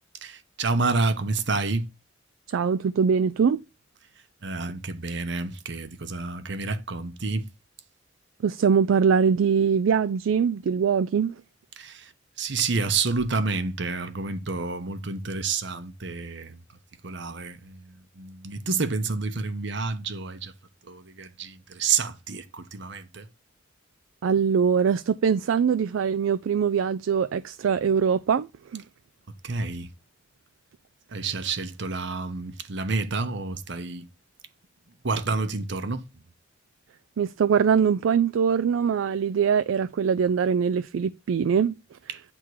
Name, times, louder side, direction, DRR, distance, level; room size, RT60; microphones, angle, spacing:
voice 1, 0.2-1.9 4.4-7.5 11.8-12.1 12.4-16.6 17.0-20.5 20.8-23.3 29.4-29.9 31.1-34.1 35.0-36.0 42.1-42.2, right 4 dB, 60° right, 0.9 m, -29 dB
voice 2, 2.5-3.6 8.4-11.4 24.2-28.8 37.2-42.0, right 6 dB, 85° right, 0.4 m, -23 dB
9.4 x 3.7 x 4.7 m
head